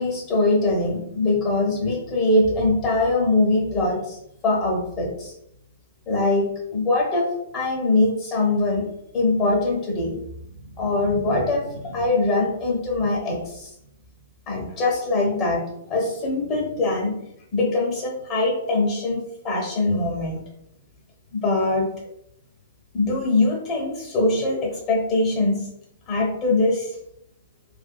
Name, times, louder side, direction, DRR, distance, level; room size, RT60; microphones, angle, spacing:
voice 1, 0.0-4.2 4.4-5.3 6.1-6.4 6.7-7.3 7.5-8.8 9.1-10.2 10.8-13.7 14.5-15.6 15.9-17.1 17.5-20.4 21.3-21.9 22.9-25.7 26.1-26.9, left 2 dB, 30° left, -1 dB, 0.9 m, -22 dB
2.6 x 2.3 x 2.2 m, 0.77 s
figure-of-eight pair, 110°, 0 cm